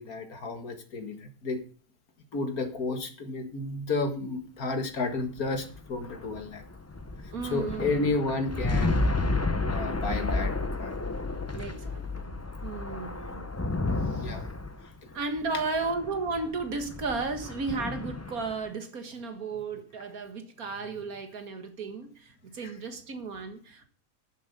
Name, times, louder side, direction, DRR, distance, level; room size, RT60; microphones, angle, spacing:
voice 1, 0.0-1.6 2.3-6.6 7.5-9.0 9.7-10.5 10.8-10.9 14.0-14.4, left 3 dB, 65° left, 7 dB, 2.2 m, -32 dB
sound 1, 5.1-18.7, left 2 dB, 20° left, 0.4 m, -32 dB
voice 2, 7.3-8.0 11.5-13.4 14.0-14.4 15.1-23.8, right 3 dB, 60° right, 7 dB, 2.0 m, -34 dB
10.5 x 7.6 x 6.7 m, 0.42 s
omnidirectional pair, 1.7 m